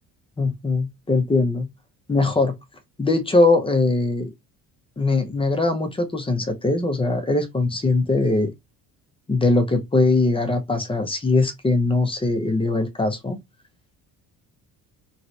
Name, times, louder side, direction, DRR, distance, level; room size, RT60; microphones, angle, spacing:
voice 1, 0.4-1.7 2.1-2.5 3.0-4.3 5.0-8.5 9.3-13.4, left 3 dB, 15° left, 0.7 m, -21 dB
3.1 x 3.0 x 2.6 m
cardioid pair, 120°, 35 cm